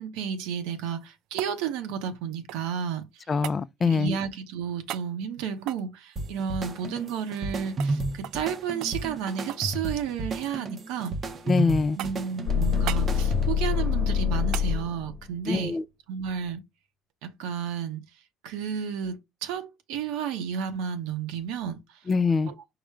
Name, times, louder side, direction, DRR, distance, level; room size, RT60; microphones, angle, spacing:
voice 1, 0.0-3.3 3.8-11.2 11.9-15.8 16.1-16.6 17.2-18.0 18.4-21.8 22.5-22.6, right 8 dB, 85° right, 0.8 m, -32 dB
sound 1, 0.8-2.8 3.4-3.6 4.9-5.1 5.6-7.5 7.8-7.9 8.2-8.5 8.8-9.7 10.0-10.6 11.0-11.6 12.0-12.4 12.9-13.1 14.5-14.7 17.1-17.2, right 14 dB, 70° right, 0.3 m, -39 dB
voice 2, 3.3-4.2 11.5-12.0 15.5-15.8 22.1-22.5, left 4 dB, 30° left, 0.3 m, -24 dB
sound 2, 6.2-13.8, right 2 dB, 35° right, 0.6 m, -33 dB
sound 3, 12.5-15.3, left 7 dB, 65° left, 1.0 m, -25 dB
4.8 x 2.1 x 4.8 m
cardioid pair, 110°, 0 cm